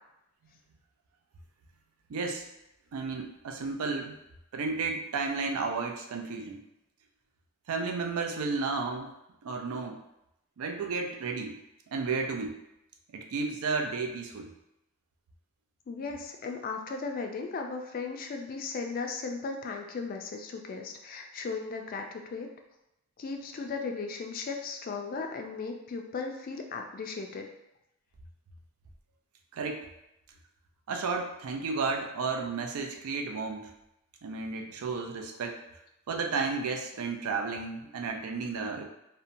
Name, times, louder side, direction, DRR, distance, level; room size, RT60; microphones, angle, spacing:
voice 1, 2.1-2.5 2.9-4.1 4.5-6.6 7.7-9.1 9.4-10.0 10.6-11.6 11.9-12.6 13.1-14.5 29.5-29.9 30.9-33.7 34.2-35.6 36.1-38.9, right 4 dB, 90° right, 4 dB, 0.4 m, -32 dB
voice 2, 15.9-22.5 23.2-27.5, left 4 dB, 40° left, 3 dB, 0.3 m, -36 dB
2.8 x 2.1 x 2.5 m, 0.85 s
head